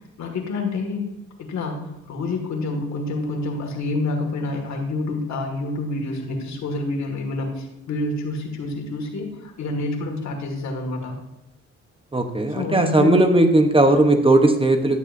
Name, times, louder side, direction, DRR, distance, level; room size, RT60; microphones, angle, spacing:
voice 1, 0.2-1.1 1.4-11.2 12.5-13.2, left 2 dB, 65° left, 3 dB, 2.2 m, -28 dB
voice 2, 12.1-15.0, right 2 dB, 20° right, 5 dB, 1.0 m, -17 dB
11.0 x 9.9 x 2.7 m, 0.88 s
cardioid pair, 90°, 30 cm